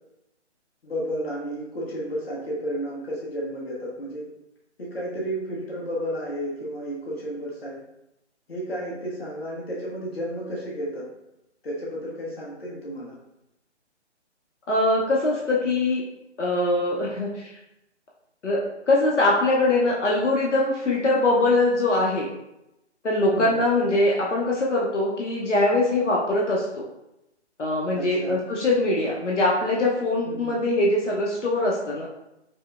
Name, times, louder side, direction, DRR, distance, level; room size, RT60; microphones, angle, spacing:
voice 1, 0.8-4.3 4.8-7.8 8.5-11.1 11.6-13.2 23.3-23.6 27.9-28.4 30.2-30.5, equal, 60° left, -4 dB, 1.2 m, -32 dB
voice 2, 14.7-16.0 16.4-17.5 18.4-18.6 18.9-22.3 23.0-26.9 27.6-32.1, left 2 dB, 85° left, -3 dB, 0.8 m, -22 dB
5.2 x 2.1 x 2.4 m, 0.88 s
figure-of-eight pair, 145°, 35 cm